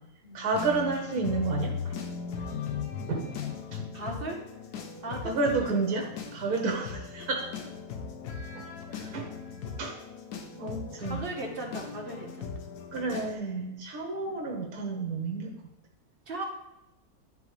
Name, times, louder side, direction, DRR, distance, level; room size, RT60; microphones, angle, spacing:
voice 1, 0.3-2.0 3.1-3.3 3.7-3.9 5.2-7.5 8.5-8.6 8.9-9.3 9.8-10.0 10.6-11.3 12.9-15.5, right 3 dB, 75° right, 1 dB, 1.4 m, -30 dB
sound 1, 0.5-13.3, left 6 dB, 90° left, 1.4 m, -38 dB
voice 2, 3.9-4.4 5.0-5.9 11.0-12.4 14.2-14.5 16.3-16.4, right 2 dB, 40° right, 0 dB, 1.3 m, -38 dB
11.0 x 3.8 x 3.2 m, 0.95 s
omnidirectional pair, 1.6 m